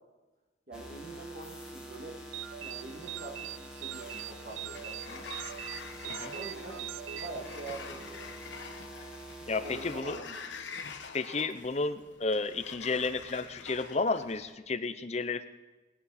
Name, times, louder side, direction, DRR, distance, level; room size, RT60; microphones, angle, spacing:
sound 1, 0.7-10.0, right 1 dB, 5° right, 1.5 m, -46 dB
voice 1, 0.7-2.2 2.6-5.3 6.3-6.8 7.1-8.3 9.6-10.4, right 2 dB, 50° right, -1 dB, 2.3 m, -44 dB
sound 2, 2.3-8.1, right 13 dB, 80° right, 0.4 m, -42 dB
Sliding door, 4.0-14.5, left 5 dB, 70° left, 1.0 m, -46 dB
voice 2, 9.5-10.2 11.1-15.4, left 3 dB, 35° left, 10 dB, 0.6 m, -32 dB
20.0 x 9.6 x 4.2 m, 1.2 s
head